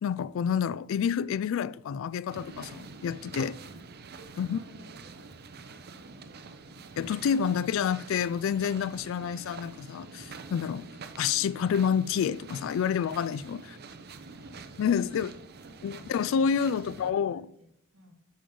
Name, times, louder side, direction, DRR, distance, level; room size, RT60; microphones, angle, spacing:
voice 1, 0.0-3.6 4.4-4.6 7.0-10.9 11.2-13.6 14.8-15.3 15.8-17.4, left 7 dB, 65° left, 0.3 m, -28 dB
sound 1, 2.3-17.1, right 4 dB, 50° right, 0.6 m, -46 dB
voice 2, 4.2-5.3 5.7-7.3 13.4-13.8 14.2-15.3 15.6-18.1, equal, 90° right, 2.4 m, -56 dB
8.6 x 6.8 x 3.8 m
head